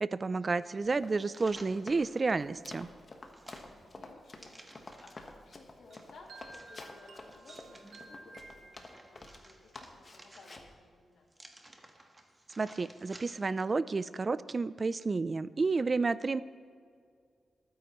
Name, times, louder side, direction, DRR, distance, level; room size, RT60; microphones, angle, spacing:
voice 1, 0.0-2.9 12.6-16.4, right 4 dB, 35° right, 16 dB, 0.3 m, -31 dB
Run, 0.9-9.4 9.8-10.7, left 2 dB, 35° left, 1.3 m, -49 dB
sound 1, 1.2-2.3 2.8-5.3 5.9-8.0 8.5-10.8 11.3-13.6 14.0-14.1, right 1 dB, 20° right, 1.3 m, -56 dB
voice 2, 3.8-11.3, left 3 dB, 80° left, -1 dB, 2.5 m, -57 dB
sound 2, 5.9-9.4, right 2 dB, 75° right, 1.4 m, -53 dB
19.5 x 9.5 x 3.1 m, 2.1 s
wide cardioid pair, 105°, 0 cm